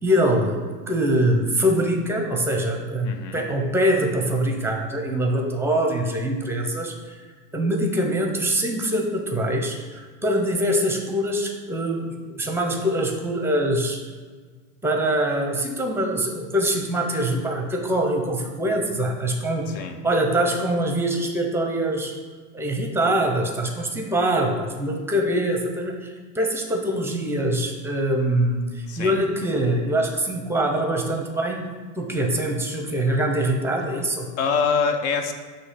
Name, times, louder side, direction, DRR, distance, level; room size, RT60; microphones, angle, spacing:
voice 1, 0.0-7.3 7.5-14.0 14.8-19.7 20.0-22.1 22.5-31.6 32.0-34.3, right 1 dB, 5° right, 3 dB, 0.7 m, -24 dB
voice 2, 3.0-3.4 19.7-20.0 28.9-29.2 34.4-35.3, left 5 dB, 55° left, 7 dB, 0.9 m, -24 dB
6.2 x 2.9 x 5.7 m, 1.5 s
hypercardioid pair, 110°, 46 cm